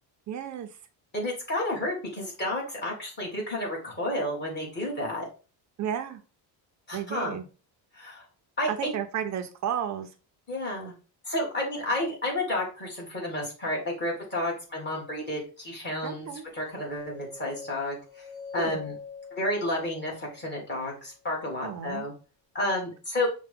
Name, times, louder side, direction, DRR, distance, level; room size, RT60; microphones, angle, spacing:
voice 1, 0.3-0.7 5.8-6.2 6.9-7.4 8.7-10.1 16.0-16.5 18.6-18.8 21.6-22.1, right 9 dB, 40° right, 8 dB, 0.5 m, -32 dB
voice 2, 1.1-5.3 6.9-7.4 7.9-8.2 8.6-8.9 10.5-10.9 11.2-18.3 18.5-19.0 19.3-22.1 22.5-23.3, left 1 dB, 25° left, -3 dB, 1.6 m, -31 dB
sound 1, 16.7-20.8, left 5 dB, 60° left, 1.6 m, -44 dB
5.6 x 2.2 x 3.4 m, 0.34 s
cardioid pair, 165°, 45 cm